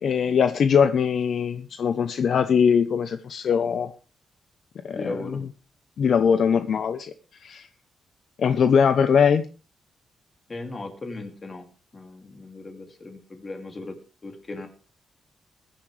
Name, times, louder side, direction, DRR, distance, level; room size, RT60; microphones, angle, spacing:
voice 1, 0.0-3.9 4.8-5.4 6.0-7.1 7.4-7.7 8.4-9.4, left 7 dB, 55° left, 10 dB, 0.8 m, -21 dB
voice 2, 4.9-5.4 10.5-11.7 11.9-14.0 14.2-14.7, left 2 dB, 25° left, 4 dB, 2.6 m, -37 dB
22.0 x 10.0 x 3.4 m, 0.35 s
wide cardioid pair, 165°, 0 cm